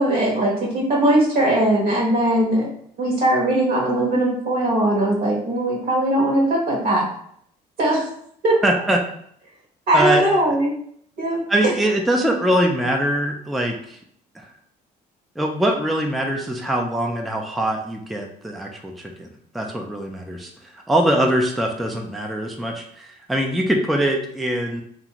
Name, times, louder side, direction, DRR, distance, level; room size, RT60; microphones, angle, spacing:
voice 1, 0.0-2.7 3.0-7.1 7.8-8.1 8.4-8.6 9.9-10.7 11.2-11.4, right 1 dB, 60° right, -2 dB, 1.1 m, -19 dB
voice 2, 8.6-9.0 9.9-10.3 11.5-14.0 14.3-14.4 15.4-24.8, right 1 dB, ahead, 1 dB, 0.3 m, -23 dB
2.5 x 2.4 x 2.9 m, 0.65 s
cardioid pair, 110°, 17 cm